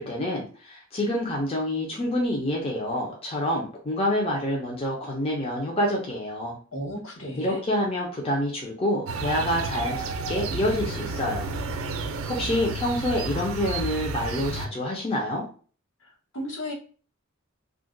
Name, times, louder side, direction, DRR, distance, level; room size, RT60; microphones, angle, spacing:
voice 1, 0.0-6.6 7.4-11.5 12.3-15.4, left 1 dB, 30° left, -2 dB, 0.6 m, -27 dB
voice 2, 6.7-7.6 16.0-16.7, equal, 70° left, -2 dB, 1.1 m, -34 dB
sound 1, 9.1-14.7, right 3 dB, 80° right, 0.4 m, -31 dB
2.4 x 2.2 x 3.7 m, 0.39 s
head